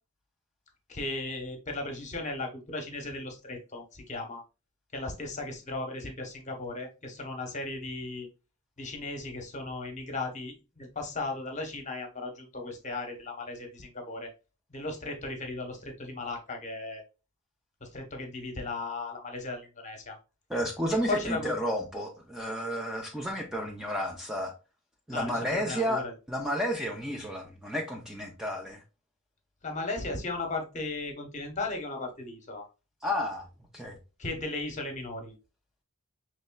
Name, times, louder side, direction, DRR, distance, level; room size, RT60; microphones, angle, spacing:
voice 1, 0.9-4.4 4.9-8.3 8.8-14.3 14.7-17.0 17.8-20.2 21.1-21.5 25.1-26.1 29.6-32.7 34.2-35.3, left 2 dB, 35° left, 1.0 m, -36 dB
voice 2, 20.5-24.5 25.1-28.8 33.0-33.5 33.7-34.0, equal, 5° right, 0.5 m, -32 dB
5.4 x 3.1 x 2.2 m
head